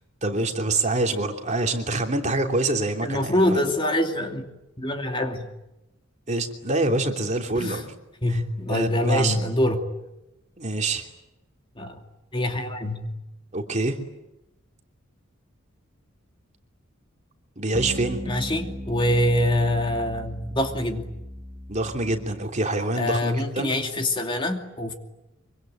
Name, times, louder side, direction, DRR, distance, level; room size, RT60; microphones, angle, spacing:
voice 1, 0.2-3.6 6.3-7.9 8.3-8.4 8.7-9.4 10.6-11.1 13.5-14.0 17.6-18.2 21.7-23.7, right 2 dB, 35° right, 3 dB, 3.0 m, -26 dB
voice 2, 3.0-4.5 4.8-5.5 7.5-7.8 8.2-9.8 11.8-12.0 12.3-13.1 18.2-21.0 23.0-24.9, left 1 dB, 25° left, 4 dB, 2.7 m, -24 dB
sound 1, 17.7-22.5, left 1 dB, 15° right, 1.5 m, -36 dB
25.0 x 25.0 x 9.2 m, 0.93 s
head